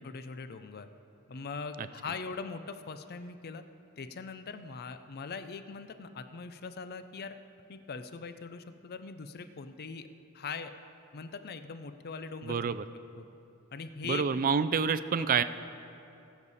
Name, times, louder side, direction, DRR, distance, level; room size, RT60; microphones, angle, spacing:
voice 1, 0.0-0.9 1.3-3.6 4.0-7.4 7.7-10.1 10.3-10.7 11.1-12.6 13.2-13.3 13.7-14.4 15.2-15.3, left 4 dB, 45° left, 10 dB, 0.5 m, -41 dB
voice 2, 12.4-12.8 14.1-15.4, right 6 dB, 40° right, 13 dB, 0.4 m, -27 dB
20.0 x 7.2 x 4.1 m, 2.7 s
head